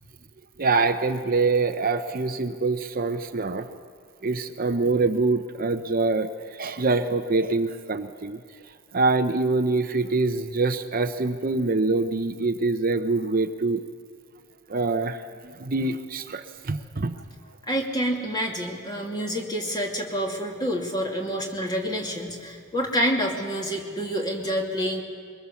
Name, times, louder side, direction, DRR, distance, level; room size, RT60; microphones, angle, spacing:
voice 1, 0.6-3.7 4.2-8.4 8.9-13.8 14.7-17.2, right 3 dB, 45° right, 8 dB, 0.8 m, -25 dB
voice 2, 17.6-25.0, equal, 20° left, 0 dB, 2.5 m, -28 dB
23.0 x 21.5 x 7.1 m, 2.3 s
head